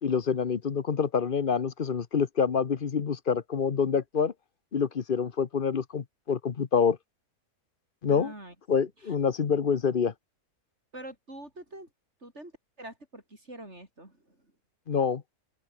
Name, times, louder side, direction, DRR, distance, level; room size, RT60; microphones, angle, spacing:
voice 1, 0.0-4.3 4.7-7.0 8.0-8.3 8.7-10.1 14.9-15.2, left 6 dB, 40° left, 1.0 m, -26 dB
voice 2, 8.1-8.6 8.8-9.2 10.9-11.9 12.2-12.5 12.8-14.5, right 1 dB, 45° right, 7.1 m, -45 dB
open air
omnidirectional pair, 1.6 m